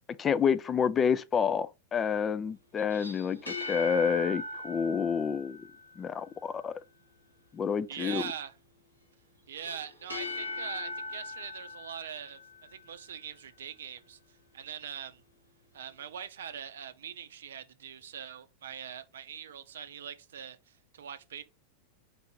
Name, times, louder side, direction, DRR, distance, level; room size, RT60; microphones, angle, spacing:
voice 1, 0.2-5.6 6.0-6.7 7.5-8.2, left 7 dB, 20° left, 0.3 m, -29 dB
sound 1, 2.8-6.3 9.5-13.1, left 2 dB, 90° left, 1.8 m, -40 dB
voice 2, 7.9-8.5 9.5-12.4 12.7-14.2 14.5-15.2 15.7-21.4, right 8 dB, 65° right, 0.5 m, -42 dB
4.6 x 2.6 x 4.4 m
figure-of-eight pair, 90°, 0 cm